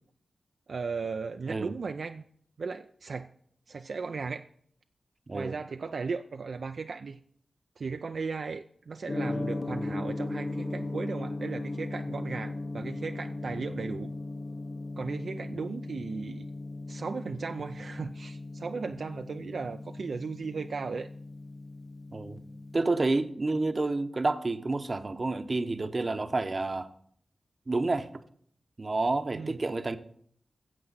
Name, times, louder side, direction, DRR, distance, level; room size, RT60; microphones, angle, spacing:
voice 1, 0.7-2.3 2.6-3.3 3.7-4.4 5.3-7.2 7.8-14.1 15.0-16.5 16.9-21.1 29.3-29.6, right 4 dB, 75° right, 0.4 m, -36 dB
Gong, 9.1-22.8, left 2 dB, 45° left, 1.0 m, -37 dB
voice 2, 22.7-26.9 27.7-28.1 28.8-30.0, right 3 dB, 45° right, 0.8 m, -29 dB
13.5 x 7.6 x 4.0 m
cardioid pair, 60°, 0 cm